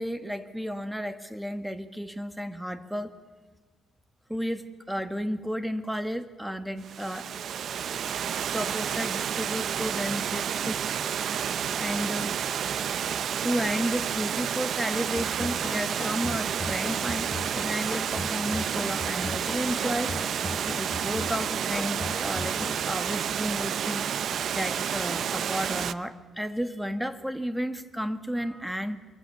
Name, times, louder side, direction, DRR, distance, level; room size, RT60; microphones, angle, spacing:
voice 1, 0.0-3.1 4.3-7.3 8.0-10.8 11.8-12.4 13.4-17.3 17.6-20.1 20.8-29.0, equal, 5° right, 9 dB, 1.9 m, -33 dB
Water, 6.8-25.9, right 8 dB, 65° right, 0.8 m, -30 dB
sound 1, 15.2-22.8, left 3 dB, 15° left, 1.6 m, -38 dB
25.0 x 23.0 x 7.2 m, 1.4 s
cardioid pair, 90°, 0 cm